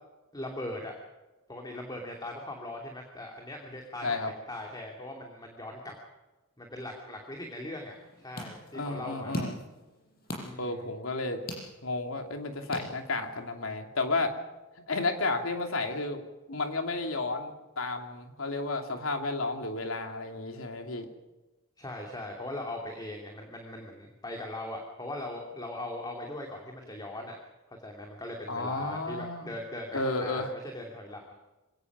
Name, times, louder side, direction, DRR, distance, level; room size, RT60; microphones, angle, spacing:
voice 1, 0.3-1.0 1.5-5.9 6.6-9.4 10.4-10.9 21.8-27.4 27.7-31.3, left 1 dB, 20° left, 1 dB, 2.8 m, -40 dB
voice 2, 4.0-4.3 8.7-9.6 10.6-11.4 11.8-14.4 14.9-16.2 16.5-21.1 28.5-29.5 29.9-30.5, left 3 dB, 90° left, 4 dB, 2.9 m, -32 dB
sound 1, 7.9-13.5, equal, 50° left, 7.3 m, -42 dB
26.5 x 17.5 x 6.2 m, 1.1 s
head